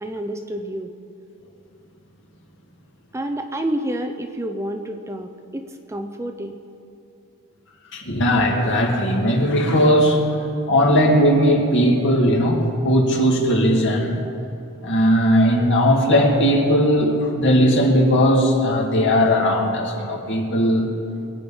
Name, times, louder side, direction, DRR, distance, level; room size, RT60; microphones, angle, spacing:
voice 1, 0.0-0.9 3.1-6.6, right 1 dB, 10° right, 6 dB, 0.6 m, -29 dB
voice 2, 7.9-10.2 10.7-14.2 14.8-20.9, equal, 55° left, 1 dB, 2.1 m, -18 dB
22.5 x 8.6 x 5.4 m, 2.7 s
head